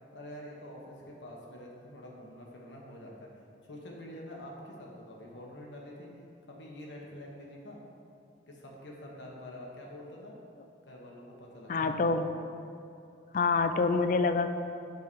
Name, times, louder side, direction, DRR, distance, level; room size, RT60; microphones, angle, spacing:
voice 1, 0.1-3.3 3.7-6.2 6.5-7.8 8.5-10.4 10.8-12.2, left 1 dB, 85° left, -2 dB, 1.2 m, -46 dB
voice 2, 11.7-12.3 13.3-14.5, left 4 dB, 45° left, 9 dB, 0.3 m, -26 dB
8.5 x 3.8 x 4.6 m, 2.6 s
head